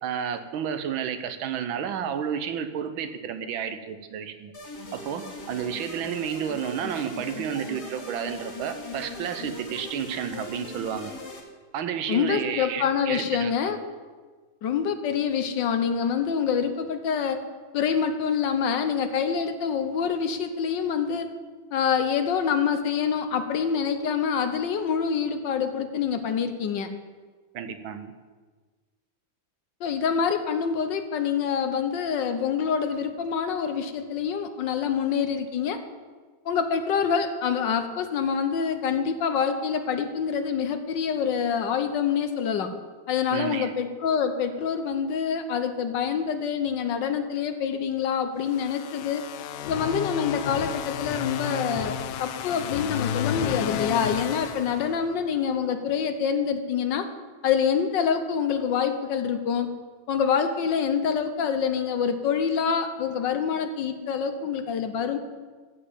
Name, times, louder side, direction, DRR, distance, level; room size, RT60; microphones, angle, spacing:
voice 1, 0.0-4.5 4.9-11.1 11.7-13.7 27.5-28.1 43.3-43.7, right 8 dB, 80° right, 9 dB, 1.7 m, -31 dB
sound 1, 4.5-11.4, left 2 dB, 55° left, 2.4 m, -40 dB
voice 2, 12.1-13.8 14.6-17.4 17.7-21.3 21.7-26.9 29.8-35.8 36.4-42.7 43.1-49.2 49.6-57.1 57.4-59.7 60.1-65.2, left 7 dB, 70° left, 9 dB, 1.5 m, -26 dB
sound 2, 48.4-55.3, left 9 dB, 90° left, 1.4 m, -32 dB
14.5 x 5.2 x 8.4 m, 1.4 s
omnidirectional pair, 2.2 m